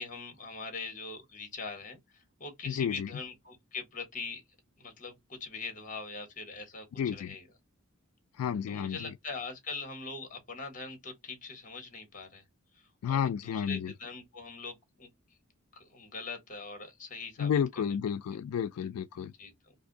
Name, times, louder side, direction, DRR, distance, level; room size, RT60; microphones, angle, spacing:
voice 1, 0.0-4.4 4.8-6.9 7.1-7.5 8.7-12.4 12.7-15.1 15.7-18.0 19.4-19.7, left 4 dB, 40° left, 1.3 m, -42 dB
voice 2, 2.7-3.1 7.0-7.4 8.4-9.1 13.0-13.9 17.4-19.3, left 8 dB, 85° left, 0.3 m, -31 dB
2.6 x 2.6 x 3.8 m
head